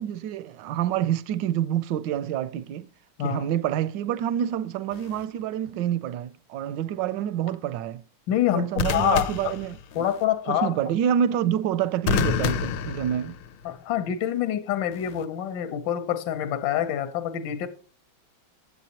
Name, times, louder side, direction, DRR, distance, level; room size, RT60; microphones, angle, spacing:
voice 1, 0.0-2.9 3.2-8.0 8.5-10.0 10.5-13.4, right 10 dB, 75° right, 1.1 m, -27 dB
sound 1, 4.9-5.2 8.8-10.2 12.1-13.7 14.9-15.2, left 7 dB, 90° left, 1.5 m, -29 dB
voice 2, 8.3-9.5 9.9-10.7 13.6-17.7, left 10 dB, 65° left, 1.5 m, -26 dB
8.4 x 8.4 x 2.8 m
omnidirectional pair, 2.3 m